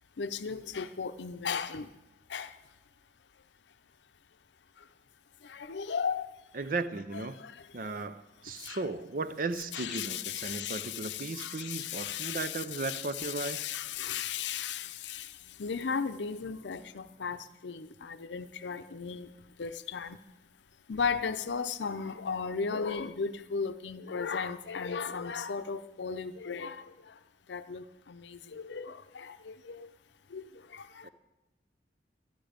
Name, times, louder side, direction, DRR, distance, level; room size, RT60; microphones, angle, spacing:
voice 1, 0.2-1.9 2.3-2.5 5.4-6.3 7.1-7.5 8.6-8.8 9.7-15.3 15.6-19.3 19.6-20.2 20.9-26.8 27.5-29.9 30.3-30.4 30.7-31.1, left 6 dB, 85° left, 11 dB, 0.6 m, -36 dB
voice 2, 6.5-7.4 7.7-13.6 31.0-31.1, right 3 dB, 50° right, 13 dB, 0.6 m, -36 dB
12.0 x 12.0 x 5.1 m, 1.1 s
head